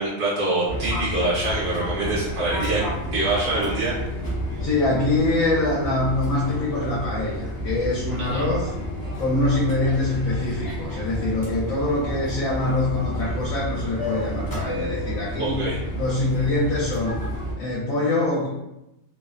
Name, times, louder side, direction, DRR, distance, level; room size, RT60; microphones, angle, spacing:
voice 1, 0.0-2.8 3.1-3.9 8.3-8.4 15.4-15.8, right 2 dB, 70° right, -7 dB, 1.1 m, -25 dB
Fixed-wing aircraft airplane, 0.7-17.5, equal, 35° left, 0.3 m, -30 dB
voice 2, 4.6-8.7 9.2-15.7 15.9-17.2 17.6-18.5, left 2 dB, 75° left, -6 dB, 1.0 m, -24 dB
2.6 x 2.0 x 2.4 m, 0.90 s
omnidirectional pair, 1.5 m